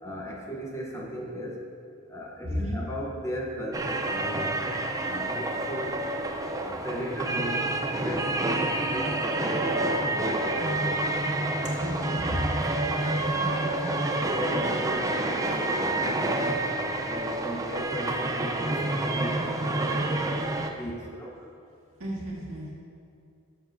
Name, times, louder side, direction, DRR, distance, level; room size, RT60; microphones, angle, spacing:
voice 1, 0.0-1.6 2.1-4.6 5.1-6.0 6.6-7.7 8.0-8.4 8.9-11.0 13.3-16.6 17.1-20.4 20.7-21.4, equal, 15° left, -1 dB, 0.7 m, -37 dB
voice 2, 2.4-2.8 11.8-12.4 22.0-22.7, equal, 65° right, -5 dB, 1.9 m, -33 dB
sound 1, 3.7-20.7, right 2 dB, 15° right, 0.4 m, -28 dB
12.0 x 7.1 x 2.5 m, 2.5 s
head